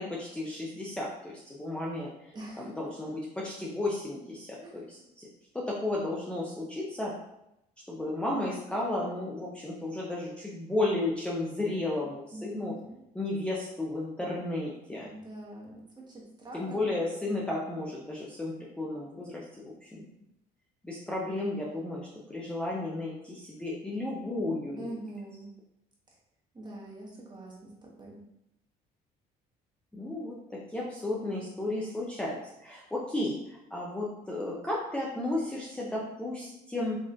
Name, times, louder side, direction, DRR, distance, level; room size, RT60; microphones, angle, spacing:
voice 1, 0.0-2.1 2.6-5.3 5.6-7.1 7.9-12.7 13.1-15.1 16.5-20.0 20.8-25.0 29.9-37.0, left 2 dB, 5° left, -5 dB, 0.6 m, -33 dB
voice 2, 2.3-2.7 4.6-4.9 12.3-12.9 14.2-14.3 14.9-17.1 24.8-25.5 26.5-28.2, right 1 dB, 25° right, -3 dB, 1.2 m, -44 dB
4.2 x 3.0 x 2.5 m, 0.83 s
cardioid pair, 110°, 17 cm